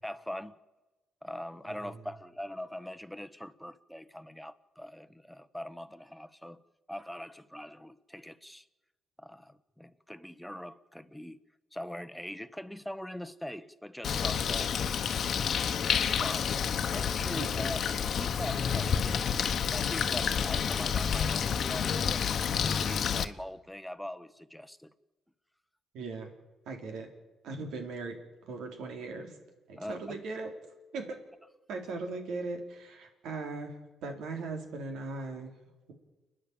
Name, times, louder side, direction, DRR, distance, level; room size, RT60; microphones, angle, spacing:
voice 1, 0.0-0.6 1.2-6.6 6.9-8.6 9.2-11.4 11.7-14.8 16.2-16.6 16.9-17.8 18.2-19.2 19.7-22.2 22.6-24.9 29.8-30.2, equal, ahead, 11 dB, 1.0 m, -42 dB
Bird, 14.0-23.2, left 7 dB, 60° left, 1.1 m, -29 dB
voice 2, 17.3-17.7 25.9-26.3 26.7-27.1 27.4-28.2 28.5-29.3 29.7-30.5 30.9-31.2 31.7-35.5, right 3 dB, 80° right, 4 dB, 3.8 m, -39 dB
29.5 x 10.0 x 9.0 m, 1.1 s
cardioid pair, 90°, 0 cm